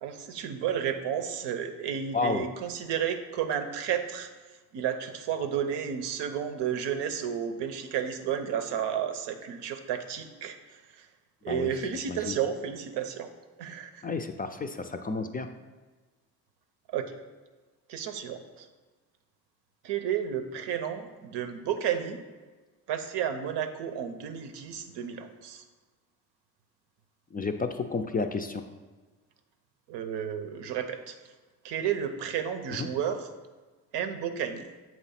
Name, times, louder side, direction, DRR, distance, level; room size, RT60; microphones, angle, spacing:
voice 1, 0.0-4.3 4.7-10.6 11.0-11.1 11.4-13.3 13.6-14.0 16.9-17.2 17.9-18.7 19.8-22.2 22.9-25.6 29.9-31.2 31.6-33.3 33.9-34.7, right 8 dB, 85° right, 7 dB, 0.7 m, -32 dB
voice 2, 2.1-2.5 11.5-11.7 12.1-12.4 14.0-15.5 27.3-28.6 32.7-32.9, left 4 dB, 25° left, 6 dB, 0.3 m, -31 dB
7.2 x 3.0 x 5.7 m, 1.3 s
cardioid pair, 95°, 40 cm